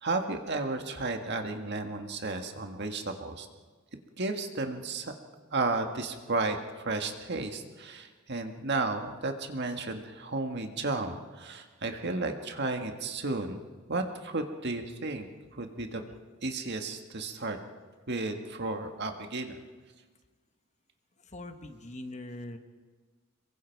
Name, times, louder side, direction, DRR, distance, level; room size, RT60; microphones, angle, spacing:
voice 1, 0.0-3.5 4.2-5.1 5.5-16.0 16.4-17.6 18.1-19.6, right 3 dB, 55° right, 5 dB, 1.7 m, -33 dB
voice 2, 21.2-22.6, left 1 dB, 35° left, 7 dB, 1.4 m, -42 dB
26.5 x 23.0 x 4.7 m, 1.5 s
head